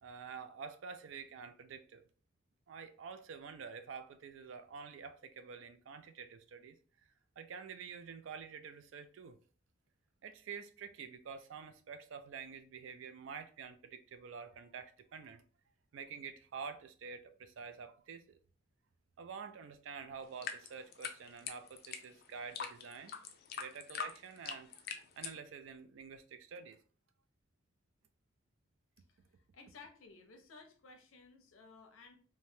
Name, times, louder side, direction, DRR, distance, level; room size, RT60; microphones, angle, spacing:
voice 1, 0.0-2.0 2.7-6.8 7.4-9.4 10.2-15.4 15.9-18.4 19.2-23.1 23.6-24.7 25.2-26.8, right 6 dB, 75° right, 0.4 m, -48 dB
sound 1, 20.2-25.4, left 7 dB, 50° left, 0.4 m, -43 dB
voice 2, 29.5-32.1, left 4 dB, 90° left, 0.7 m, -56 dB
3.2 x 2.1 x 2.7 m
head